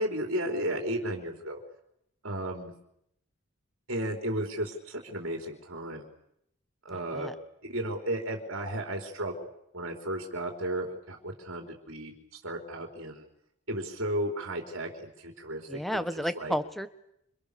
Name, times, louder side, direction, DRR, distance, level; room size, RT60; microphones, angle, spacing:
voice 1, 0.0-1.6 2.2-2.7 3.9-6.1 6.8-7.3 7.7-9.5 9.7-13.2 13.7-16.1 16.4-16.5, right 1 dB, 60° right, 2 dB, 4.3 m, -34 dB
voice 2, 15.7-16.9, equal, ahead, 11 dB, 1.3 m, -31 dB
29.5 x 28.5 x 7.0 m, 0.76 s
head